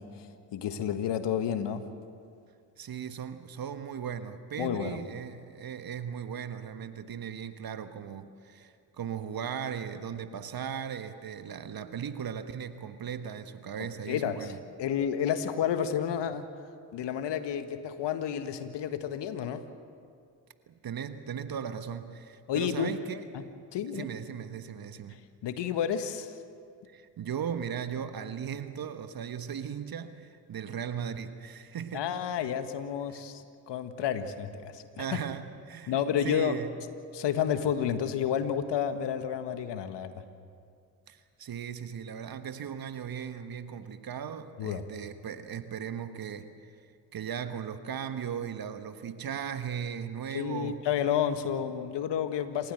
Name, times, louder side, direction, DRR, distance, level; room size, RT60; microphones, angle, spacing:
voice 1, 0.0-1.9 4.6-5.0 13.8-14.5 14.8-16.5 16.9-19.7 22.5-22.9 23.3-23.4 23.7-24.1 25.4-26.3 31.9-35.2 35.9-36.6 37.1-40.1 44.6-44.8 50.3-52.7, left 9 dB, 60° left, 9 dB, 1.7 m, -31 dB
voice 2, 2.8-14.6 20.7-23.2 23.8-25.2 26.9-32.1 33.1-33.2 35.0-36.8 41.1-50.8, right 8 dB, 45° right, 10 dB, 1.4 m, -37 dB
28.0 x 15.5 x 7.9 m, 2.3 s
hypercardioid pair, 50°, 48 cm